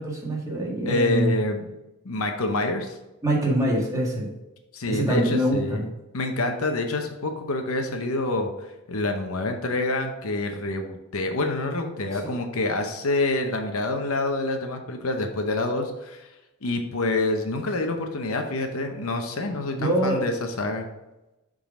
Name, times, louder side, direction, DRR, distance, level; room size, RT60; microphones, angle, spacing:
voice 1, 0.0-1.4 3.2-4.3 4.9-5.8 12.2-12.3 19.7-20.3, right 1 dB, 15° right, -3 dB, 1.7 m, -24 dB
voice 2, 0.9-1.7 2.0-3.0 4.7-16.3 16.6-20.9, left 2 dB, 70° left, 4 dB, 0.8 m, -27 dB
7.2 x 3.9 x 4.9 m, 0.98 s
head